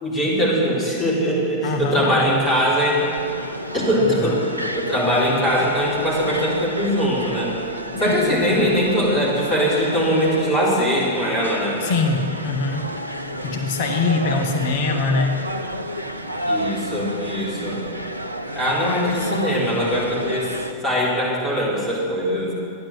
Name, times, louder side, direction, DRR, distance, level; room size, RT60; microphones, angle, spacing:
voice 1, 0.0-3.0 3.7-4.4 4.8-7.5 8.0-11.8 16.5-17.8 18.6-20.5 20.8-22.5, equal, 15° left, -6 dB, 3.9 m, -21 dB
voice 2, 1.6-2.4 4.0-4.3 7.9-8.7 11.8-12.9 13.4-15.4 18.8-19.3, left 4 dB, 50° left, 3 dB, 1.1 m, -24 dB
sound 1, 2.0-20.7, equal, 85° right, 0.6 m, -31 dB
13.5 x 10.5 x 7.6 m, 2.6 s
figure-of-eight pair, 90°, 0 cm